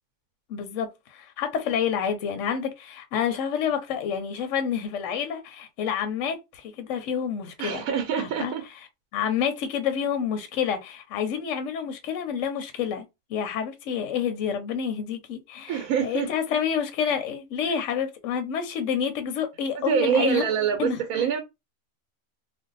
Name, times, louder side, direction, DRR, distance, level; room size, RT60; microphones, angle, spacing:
voice 1, 0.5-7.8 8.2-8.9 9.1-13.0 13.3-20.4 20.8-21.3, left 7 dB, 70° left, 0.9 m, -28 dB
voice 2, 7.6-8.6 15.7-16.3 19.7-21.4, right 7 dB, 80° right, 1.0 m, -25 dB
2.5 x 2.2 x 3.8 m
omnidirectional pair, 1.5 m